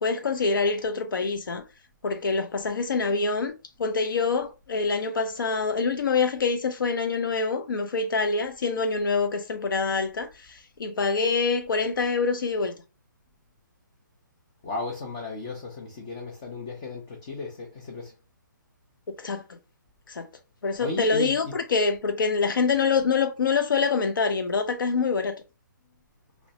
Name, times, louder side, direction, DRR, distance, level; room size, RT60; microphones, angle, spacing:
voice 1, 0.0-1.6 2.0-12.7 19.2-19.4 20.1-20.3 20.6-25.4, left 4 dB, 80° left, 0.5 m, -25 dB
voice 2, 14.6-18.1 20.8-21.5, left 3 dB, 15° left, 0.3 m, -35 dB
3.1 x 3.0 x 2.7 m
hypercardioid pair, 170°, 11 cm